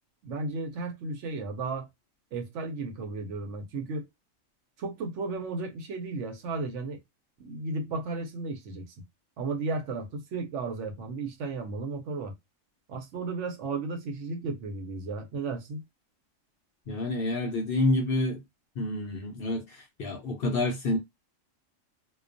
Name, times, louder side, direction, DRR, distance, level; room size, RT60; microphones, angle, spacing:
voice 1, 0.2-1.9 2.3-4.1 4.8-7.0 7.4-8.8 9.4-12.3 12.9-15.8, right 3 dB, 70° right, 0.9 m, -34 dB
voice 2, 16.9-18.4 18.8-21.0, left 2 dB, 60° left, 0.6 m, -28 dB
2.3 x 2.2 x 2.5 m
omnidirectional pair, 1.3 m